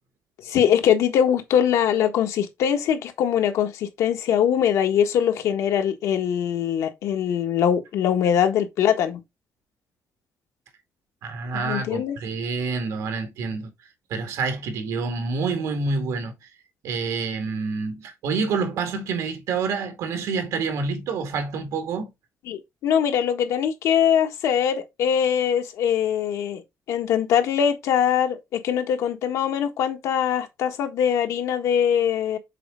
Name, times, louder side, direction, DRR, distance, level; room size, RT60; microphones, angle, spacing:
voice 1, 0.4-9.2 11.5-12.2 22.5-26.6 26.9-32.4, left 9 dB, 85° left, 1.4 m, -22 dB
voice 2, 11.2-13.7 14.1-16.3 16.8-22.1, right 4 dB, 85° right, 2.1 m, -27 dB
6.8 x 4.1 x 3.6 m
cardioid pair, 180°, 5 cm